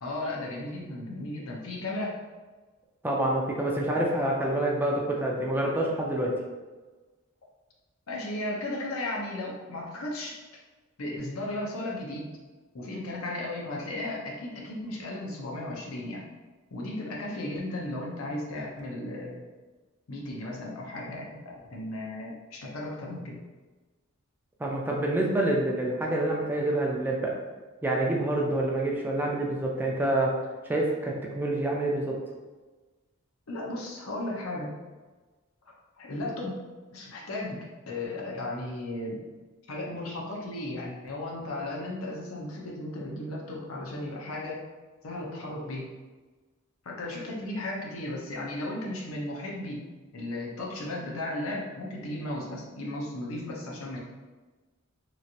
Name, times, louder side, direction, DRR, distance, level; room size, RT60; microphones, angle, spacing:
voice 1, 0.0-2.2 8.1-10.4 11.0-12.3 12.7-16.2 16.7-19.4 20.1-21.3 21.6-23.4 33.5-34.7 36.0-36.6 36.9-39.2 39.7-44.6 45.0-45.9 46.8-49.8 50.1-54.0, left 1 dB, 80° left, -2 dB, 0.7 m, -35 dB
voice 2, 3.0-6.3 24.6-27.3 27.8-30.3 30.7-32.2, right 1 dB, 10° right, -2 dB, 0.4 m, -27 dB
3.0 x 2.4 x 2.7 m, 1.3 s
head